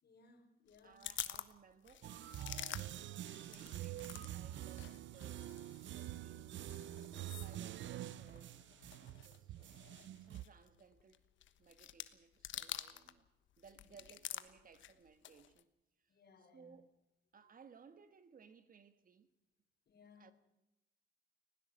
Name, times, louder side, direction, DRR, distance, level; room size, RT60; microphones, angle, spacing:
voice 1, 0.0-1.0 7.1-7.4 8.8-8.9 13.7-13.9 16.1-16.8 19.9-20.3, left 4 dB, 55° left, 4.0 m, -65 dB
sound 1, 0.7-4.3 4.6-13.2 13.5-15.6, left 12 dB, 75° left, 1.2 m, -49 dB
voice 2, 0.8-5.5 5.9-6.7 7.3-8.5 8.8-9.9 10.2-11.3 11.6-13.3 13.6-15.7 16.0-16.9 17.3-19.3 20.1-20.3, right 6 dB, 45° right, 1.6 m, -62 dB
sound 2, 2.0-10.4, right 13 dB, 70° right, 0.7 m, -46 dB
20.0 x 17.0 x 7.9 m
cardioid pair, 90°, 20 cm